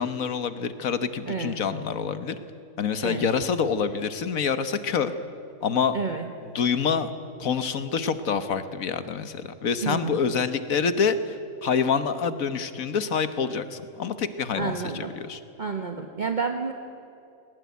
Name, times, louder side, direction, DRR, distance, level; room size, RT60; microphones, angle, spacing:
voice 1, 0.0-2.3 2.8-5.1 5.6-5.9 6.5-7.1 7.4-11.3 11.6-15.4, left 6 dB, 90° left, 11 dB, 1.6 m, -26 dB
voice 2, 1.3-1.6 3.0-3.3 5.9-6.3 9.8-10.2 14.5-15.1 15.6-16.7, right 5 dB, 35° right, 4 dB, 1.3 m, -30 dB
21.0 x 19.5 x 9.5 m, 2.7 s
omnidirectional pair, 1.4 m